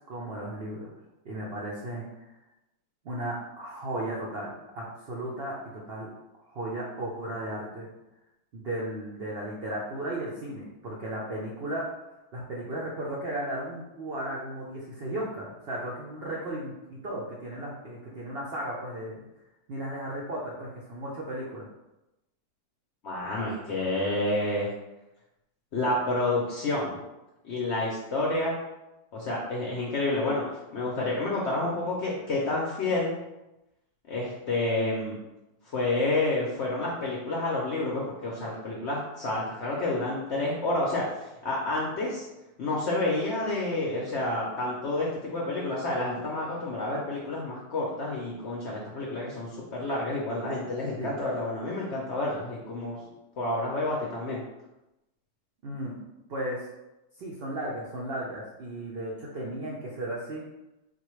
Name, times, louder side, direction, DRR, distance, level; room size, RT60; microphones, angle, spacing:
voice 1, 0.1-0.9 1.2-2.3 3.0-6.1 6.4-7.9 8.5-11.9 12.3-19.3 19.7-21.7 51.0-51.2 55.6-56.0 56.3-56.7 57.2-60.4, right 1 dB, 70° right, -4 dB, 0.5 m, -35 dB
voice 2, 23.0-24.7 25.7-27.0 27.4-28.6 29.1-30.4 30.7-33.2 34.1-35.2 35.7-42.3 42.6-53.0 53.4-54.4, left 2 dB, 65° left, -4 dB, 0.7 m, -29 dB
4.1 x 2.2 x 3.1 m, 0.95 s
omnidirectional pair, 1.7 m